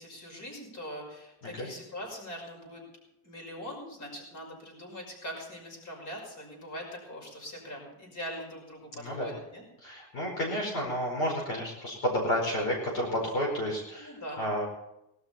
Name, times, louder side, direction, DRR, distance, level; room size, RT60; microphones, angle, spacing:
voice 1, 0.0-2.8 3.2-9.6 14.0-14.4, equal, 45° left, 0 dB, 5.8 m, -42 dB
voice 2, 8.9-9.3 9.8-14.7, equal, 60° left, -2 dB, 5.0 m, -31 dB
19.5 x 12.5 x 4.4 m, 0.87 s
cardioid pair, 160°, 41 cm